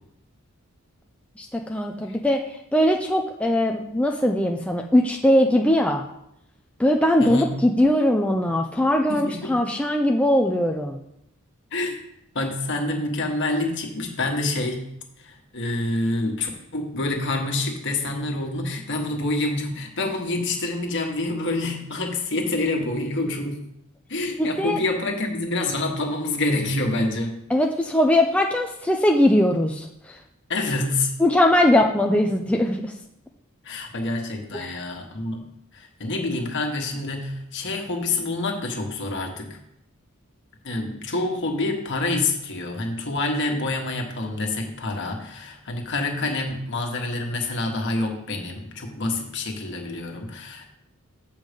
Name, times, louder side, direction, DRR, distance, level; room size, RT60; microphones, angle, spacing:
voice 1, 1.4-6.0 6.8-11.0 24.4-24.8 27.5-30.2 31.2-32.9 34.5-34.8, left 1 dB, 5° left, 1 dB, 0.5 m, -21 dB
voice 2, 7.2-7.6 9.1-9.5 11.7-12.0 12.3-14.9 15.2-23.6 24.1-27.4 30.5-31.1 33.6-35.4 35.7-39.6 40.6-50.7, left 2 dB, 55° left, 2 dB, 1.5 m, -27 dB
7.8 x 5.5 x 5.2 m, 0.78 s
head